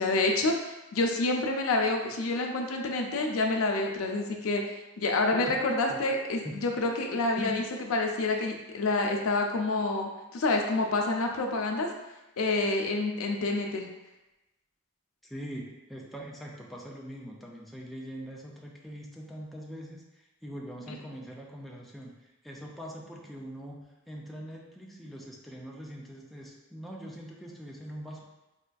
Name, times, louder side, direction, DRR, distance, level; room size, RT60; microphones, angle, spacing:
voice 1, 0.0-4.6 5.0-7.6 7.9-11.9 12.4-13.9 20.9-21.0, left 2 dB, 75° left, 2 dB, 0.4 m, -28 dB
voice 2, 5.3-5.6 5.9-6.0 6.4-6.6 7.4-7.5 15.2-28.2, equal, ahead, -3 dB, 0.3 m, -42 dB
4.2 x 2.5 x 2.2 m, 1.0 s
head